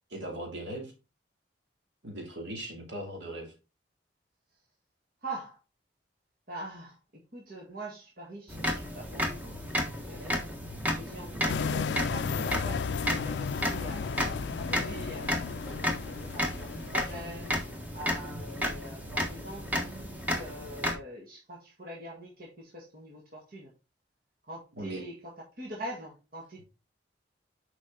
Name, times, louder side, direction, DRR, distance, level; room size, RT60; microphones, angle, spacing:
voice 1, 0.1-0.9 2.0-3.5 24.8-25.0, right 1 dB, 75° right, 2 dB, 2.7 m, -39 dB
voice 2, 5.2-5.6 6.5-7.0 7.3-9.8 10.1-10.5 10.9-14.1 14.5-15.4 16.1-17.6 17.9-23.7 24.5-25.3 25.6-26.6, right 1 dB, 55° right, -2 dB, 1.7 m, -43 dB
sound 1, 8.5-20.9, equal, 10° right, 1.3 m, -33 dB
sound 2, 11.5-17.7, left 6 dB, 65° left, 0.3 m, -34 dB
7.4 x 5.0 x 3.8 m, 0.30 s
head